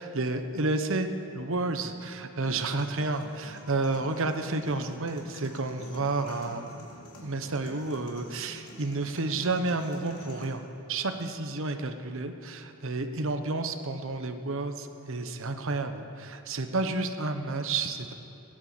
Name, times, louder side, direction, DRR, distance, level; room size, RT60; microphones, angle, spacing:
voice 1, 0.0-6.9 7.2-10.6 10.9-18.1, right 3 dB, 60° right, 7 dB, 1.0 m, -31 dB
sound 1, 2.5-10.5, left 1 dB, 85° left, 2.8 m, -49 dB
16.5 x 10.0 x 7.6 m, 2.9 s
head